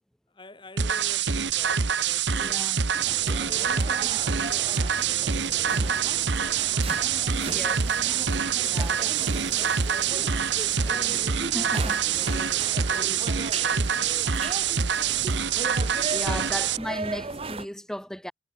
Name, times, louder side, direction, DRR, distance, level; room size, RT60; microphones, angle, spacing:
voice 1, 0.3-2.7 3.1-6.8 7.3-7.9 8.5-8.9 9.3-11.5 12.1-15.4 16.4-16.7, left 1 dB, 25° left, 2.9 m, -47 dB
sound 1, 0.8-16.8, right 7 dB, 75° right, 1.1 m, -25 dB
voice 2, 2.4-2.8 7.5-7.8 8.7-9.1 11.5-12.0 16.1-18.3, equal, 5° left, 1.1 m, -35 dB
sound 2, 2.9-17.7, right 3 dB, 30° right, 1.1 m, -37 dB
head